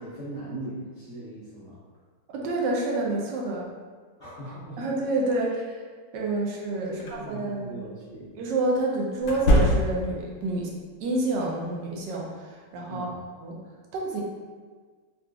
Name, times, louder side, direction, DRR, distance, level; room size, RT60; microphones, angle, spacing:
voice 1, 0.0-1.8 4.2-4.8 6.9-8.3 12.9-13.2, right 1 dB, 45° left, -12 dB, 0.8 m, -39 dB
voice 2, 2.3-3.7 4.8-5.8 6.1-7.9 8.4-10.7 11.0-13.1 13.4-13.6 13.9-14.2, right 2 dB, 80° right, -2 dB, 1.2 m, -28 dB
sound 1, 7.0-7.2 9.2-10.2, equal, 90° left, 1.3 m, -22 dB
3.7 x 2.4 x 2.4 m, 1.5 s
omnidirectional pair, 1.9 m